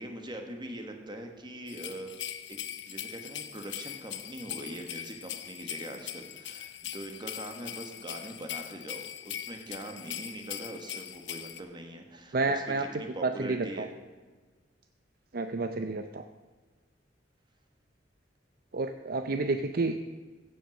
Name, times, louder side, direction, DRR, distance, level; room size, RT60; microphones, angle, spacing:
voice 1, 0.0-2.2 2.5-2.6 2.9-13.9, right 1 dB, 25° right, 4 dB, 1.6 m, -42 dB
The Bells of Santa Claus, 1.7-11.6, left 10 dB, 75° left, 0.9 m, -41 dB
voice 2, 12.3-12.8 13.2-13.9 15.3-16.2 18.7-20.0, right 3 dB, 55° right, 8 dB, 0.6 m, -30 dB
15.5 x 7.8 x 6.4 m, 1.4 s
head